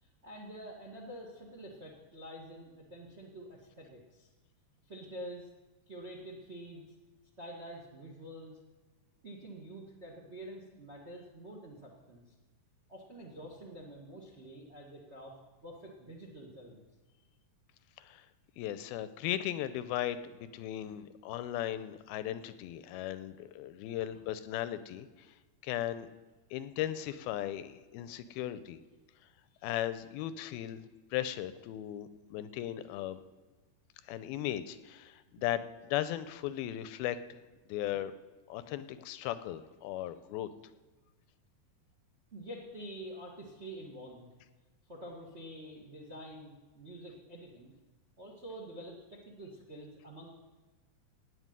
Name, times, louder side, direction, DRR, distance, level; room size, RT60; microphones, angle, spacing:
voice 1, 0.0-4.3 4.8-5.5 5.9-6.9 7.4-8.6 9.2-12.3 12.9-15.3 15.6-16.8 20.8-21.0 24.1-24.2 29.6-29.7 35.3-35.4 42.3-44.3 44.9-47.7 48.2-50.3, right 1 dB, 40° right, 0 dB, 0.9 m, -47 dB
voice 2, 18.6-25.1 25.6-26.1 26.5-28.8 29.6-33.2 34.1-37.4 37.7-38.1 38.5-40.5, left 12 dB, 85° left, 13 dB, 2.4 m, -37 dB
16.5 x 5.8 x 9.6 m, 1.2 s
omnidirectional pair, 4.4 m